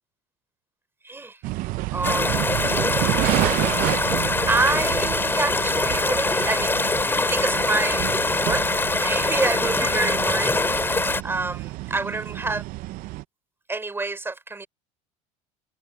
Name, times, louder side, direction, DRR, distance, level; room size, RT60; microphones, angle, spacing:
voice 1, 1.0-1.4 1.9-3.4 3.8-6.8 7.3-8.6 9.0-10.6 10.9-12.6 13.7-14.7, right 3 dB, 15° right, 3.5 m, -28 dB
sound 1, 1.4-13.2, right 19 dB, 60° right, 0.7 m, -29 dB
sound 2, 2.0-11.2, left 3 dB, 15° left, 2.5 m, -23 dB
open air
supercardioid pair, 105°, 16 cm